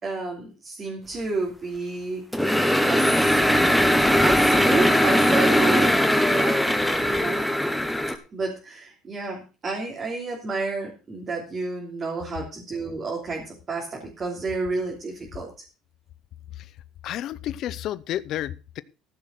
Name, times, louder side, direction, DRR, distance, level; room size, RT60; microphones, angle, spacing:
voice 1, 0.0-2.6 2.9-3.4 4.2-5.9 6.3-7.4 8.3-15.5, right 3 dB, 25° right, -2 dB, 3.1 m, -31 dB
sound 1, 2.3-8.2, equal, ahead, 1.2 m, -20 dB
voice 2, 17.0-18.8, left 12 dB, 50° left, 15 dB, 0.6 m, -31 dB
14.5 x 6.0 x 6.5 m, 0.33 s
cardioid pair, 155°, 0 cm